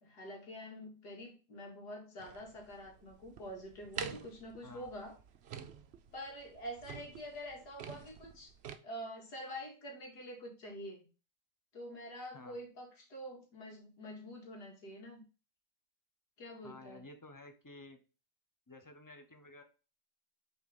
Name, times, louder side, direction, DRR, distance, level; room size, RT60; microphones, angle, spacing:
voice 1, 0.0-5.2 6.1-8.5 8.8-11.0 11.7-15.2 16.4-17.0, equal, 90° left, 0 dB, 2.6 m, -46 dB
sound 1, 2.2-8.8, right 7 dB, 60° right, 0.7 m, -47 dB
voice 2, 16.6-18.0 18.7-19.6, left 2 dB, 20° left, 6 dB, 0.6 m, -53 dB
6.1 x 4.4 x 3.7 m, 0.35 s
omnidirectional pair, 1.7 m